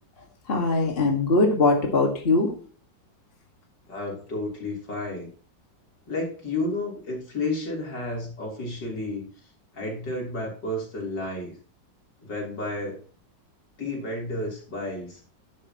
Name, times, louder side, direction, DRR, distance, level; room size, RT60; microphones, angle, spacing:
voice 1, 0.5-2.5, left 3 dB, 30° left, 2 dB, 2.0 m, -21 dB
voice 2, 3.9-5.3 6.1-9.2 9.7-11.5 12.2-13.0 13.8-15.2, left 2 dB, 65° left, -1 dB, 4.2 m, -31 dB
12.0 x 10.5 x 3.0 m, 0.40 s
omnidirectional pair, 2.1 m